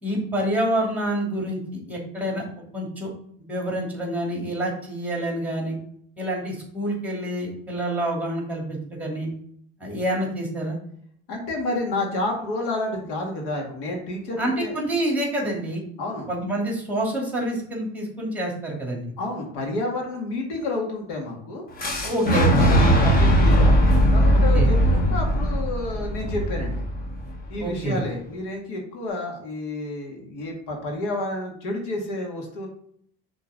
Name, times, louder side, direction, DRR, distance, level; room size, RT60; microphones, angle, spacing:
voice 1, 0.0-1.6 1.9-2.4 2.7-3.1 3.5-5.8 6.2-9.3 9.8-10.8 14.4-15.8 16.3-19.1 22.0-22.8 24.5-24.7 27.6-28.0, right 1 dB, 5° right, -1 dB, 2.5 m, -27 dB
voice 2, 11.3-14.8 16.0-16.3 19.2-21.6 22.5-23.8 24.1-26.8 27.5-32.7, left 2 dB, 80° left, 1 dB, 2.1 m, -30 dB
Boom, 21.8-27.7, equal, 30° left, 1.4 m, -19 dB
6.1 x 3.7 x 5.1 m, 0.65 s
cardioid pair, 120°, 31 cm